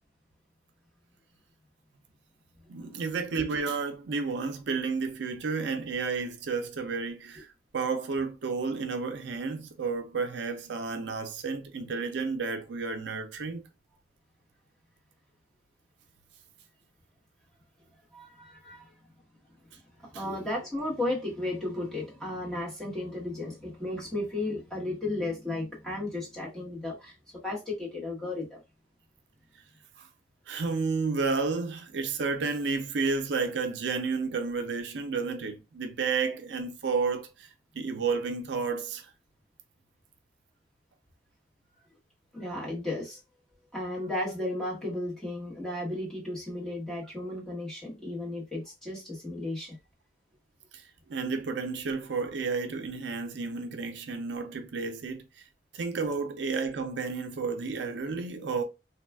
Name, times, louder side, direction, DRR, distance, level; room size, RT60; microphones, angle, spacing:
voice 1, 2.7-13.6 20.1-20.2 30.0-30.1 30.5-37.5 37.7-39.1 50.7-50.8 51.1-55.2 55.7-58.6, right 4 dB, 75° right, 0.4 m, -31 dB
voice 2, 18.1-18.9 20.0-27.1 27.4-28.6 42.3-43.2 43.7-49.8, left 2 dB, 5° left, 1.1 m, -34 dB
3.3 x 2.3 x 2.2 m
head